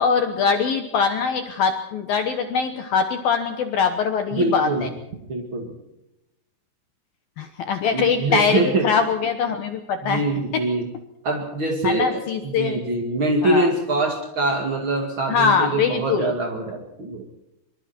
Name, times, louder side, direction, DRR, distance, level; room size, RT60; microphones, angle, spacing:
voice 1, 0.0-4.9 7.4-10.2 10.5-10.6 11.8-12.8 13.4-13.7 15.3-16.3, left 6 dB, 80° left, 7 dB, 2.1 m, -22 dB
voice 2, 4.3-4.9 5.3-5.7 7.9-8.9 10.0-10.9 11.2-17.2, right 2 dB, 45° right, 1 dB, 1.8 m, -24 dB
25.5 x 24.5 x 4.5 m, 0.91 s
omnidirectional pair, 5.9 m